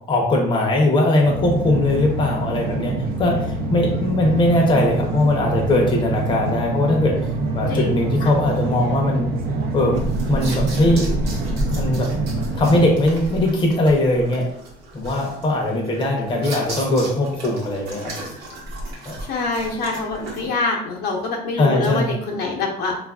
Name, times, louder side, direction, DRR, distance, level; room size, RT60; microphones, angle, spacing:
voice 1, 0.1-2.9 3.2-3.4 3.7-7.1 7.5-9.3 9.7-11.1 11.7-12.1 12.5-14.4 14.9-18.3 19.1-19.2 21.6-22.1, left 1 dB, 30° left, 0 dB, 0.6 m, -20 dB
sound 1, 1.3-13.0, right 2 dB, 65° right, 0.5 m, -25 dB
sound 2, 9.9-20.5, right 1 dB, 80° right, 0.9 m, -31 dB
voice 2, 19.3-22.9, left 3 dB, 70° left, -1 dB, 0.7 m, -25 dB
3.3 x 2.4 x 2.3 m, 0.72 s
cardioid pair, 110°, 17 cm